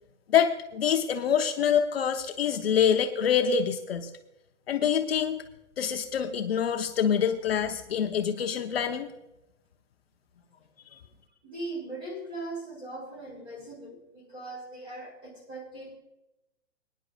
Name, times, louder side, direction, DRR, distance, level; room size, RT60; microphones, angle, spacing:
voice 1, 0.3-4.1 4.7-5.4 5.8-9.1, left 8 dB, 55° left, 6 dB, 0.8 m, -26 dB
voice 2, 11.4-15.9, right 2 dB, 15° right, -1 dB, 3.2 m, -39 dB
21.5 x 10.5 x 2.4 m, 0.90 s
hypercardioid pair, 175°, 36 cm